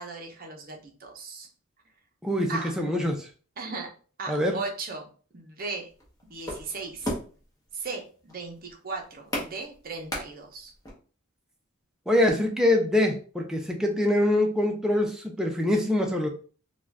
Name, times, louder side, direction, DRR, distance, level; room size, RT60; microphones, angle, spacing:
voice 1, 0.0-1.5 2.5-2.8 3.6-3.9 4.2-5.1 5.3-5.9 6.3-7.1 7.7-10.7, right 3 dB, 45° right, 2 dB, 0.6 m, -37 dB
voice 2, 2.8-3.3 4.3-4.6 12.1-16.3, left 1 dB, 5° right, 0 dB, 0.4 m, -24 dB
sound 1, 5.9-10.9, left 1 dB, 15° left, 0.8 m, -36 dB
2.5 x 2.3 x 3.2 m, 0.39 s
head